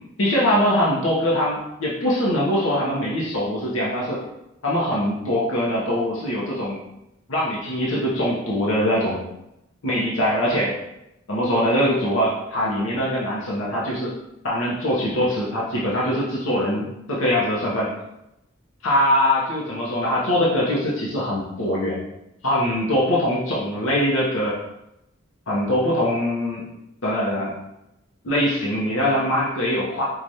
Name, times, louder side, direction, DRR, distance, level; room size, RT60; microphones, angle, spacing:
voice 1, 0.2-4.2 4.6-6.8 7.3-9.2 9.8-10.8 11.3-14.1 14.4-17.9 18.8-22.0 22.4-24.6 25.5-26.6 27.0-27.5 28.2-30.0, equal, 85° left, -5 dB, 0.8 m, -22 dB
4.7 x 2.4 x 2.7 m, 0.87 s
head